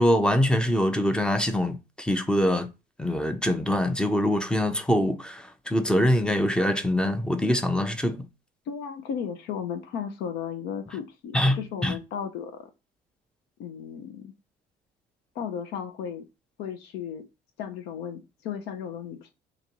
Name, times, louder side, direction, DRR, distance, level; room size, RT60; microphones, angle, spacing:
voice 1, 0.0-2.7 3.0-8.2 11.3-12.0, left 1 dB, 5° left, 0.5 m, -24 dB
voice 2, 8.7-12.7 13.6-14.3 15.3-16.2 16.6-17.2 17.6-19.3, left 7 dB, 85° left, 0.6 m, -35 dB
2.9 x 2.6 x 4.3 m
cardioid pair, 110°, 17 cm